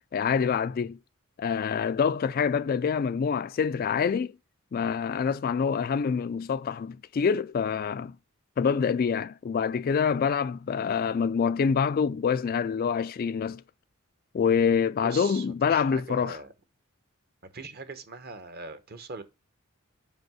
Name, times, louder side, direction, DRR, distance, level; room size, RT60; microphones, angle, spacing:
voice 1, 0.1-1.0 1.4-4.3 4.7-8.2 8.6-13.6 14.3-16.4, left 6 dB, 45° left, 0.3 m, -26 dB
voice 2, 15.0-16.5 17.5-19.2, right 3 dB, 45° right, 1.0 m, -41 dB
5.6 x 5.2 x 6.1 m
head